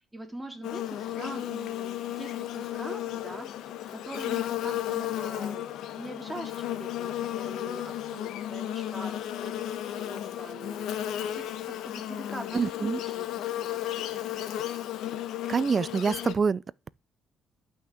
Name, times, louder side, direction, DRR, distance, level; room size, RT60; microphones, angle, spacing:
voice 1, 0.0-5.7 6.0-9.6 9.9-14.1, right 1 dB, 10° right, 3.4 m, -43 dB
Buzz, 0.6-16.3, left 12 dB, 85° left, 1.2 m, -34 dB
voice 2, 12.5-13.0 15.5-16.9, right 5 dB, 40° right, 0.5 m, -26 dB
11.5 x 6.0 x 7.9 m
cardioid pair, 90°, 0 cm